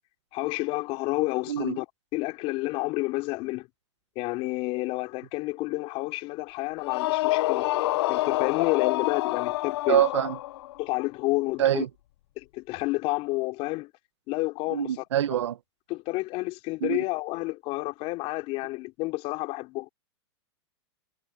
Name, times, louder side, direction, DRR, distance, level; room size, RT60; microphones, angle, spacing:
voice 1, 0.3-1.9 2.1-3.7 4.2-7.7 8.1-10.0 10.8-11.8 12.4-13.9 14.3-14.9 15.9-19.9, left 22 dB, 40° left, 3.7 m, -30 dB
voice 2, 1.5-1.8 9.9-10.4 11.6-11.9 14.7-15.6 16.8-17.0, right 11 dB, 85° right, 1.1 m, -25 dB
sound 1, 6.8-10.8, left 18 dB, 65° left, 0.6 m, -27 dB
hypercardioid pair, 135°, 15 cm